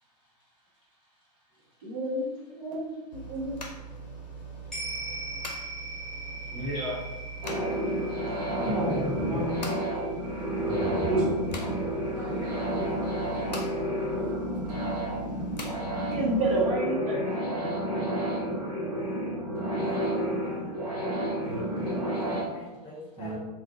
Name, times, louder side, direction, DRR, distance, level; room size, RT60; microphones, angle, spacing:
voice 1, 1.8-3.6 8.6-9.7 10.8-11.3 16.1-17.7, right 1 dB, 55° right, -5 dB, 0.9 m, -30 dB
sound 1, 3.1-16.7, right 3 dB, 85° left, 0.4 m, -42 dB
sound 2, 4.7-13.3 13.6-13.7, right 2 dB, 5° left, 0.8 m, -42 dB
voice 2, 6.5-7.0 8.6-9.5 10.6-12.0 21.4-21.6 23.2-23.4, equal, 20° right, -6 dB, 1.0 m, -34 dB
sound 3, 7.4-22.4, equal, 70° right, 1.1 m, -30 dB
voice 3, 12.1-13.7 15.5-15.7 18.9-19.3 19.8-21.1 22.1-23.4, left 1 dB, 25° left, -4 dB, 0.5 m, -46 dB
2.3 x 2.2 x 2.5 m, 1.1 s
figure-of-eight pair, 95°, 21 cm